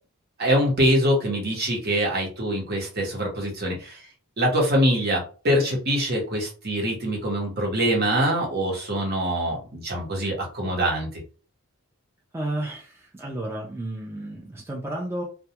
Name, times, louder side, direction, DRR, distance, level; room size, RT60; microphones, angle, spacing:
voice 1, 0.4-4.0 4.4-11.2, equal, 50° right, -1 dB, 0.9 m, -24 dB
voice 2, 12.3-15.2, right 1 dB, 10° right, -2 dB, 0.4 m, -32 dB
2.3 x 2.2 x 2.8 m, 0.37 s
head